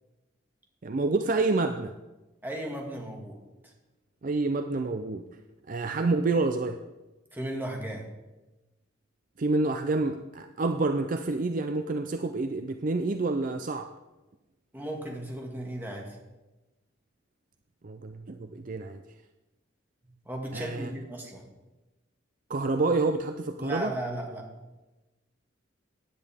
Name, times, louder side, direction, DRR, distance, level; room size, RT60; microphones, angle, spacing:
voice 1, 0.8-1.9 4.2-5.2 5.7-6.8 9.4-13.9 17.8-19.0 20.5-20.9 22.5-23.9, right 3 dB, 45° right, 7 dB, 0.5 m, -28 dB
voice 2, 2.4-3.4 3.6-3.7 7.3-8.0 14.7-16.2 20.3-21.4 23.6-24.5, right 1 dB, 10° right, 0 dB, 1.9 m, -35 dB
15.5 x 10.0 x 3.5 m, 1.1 s
head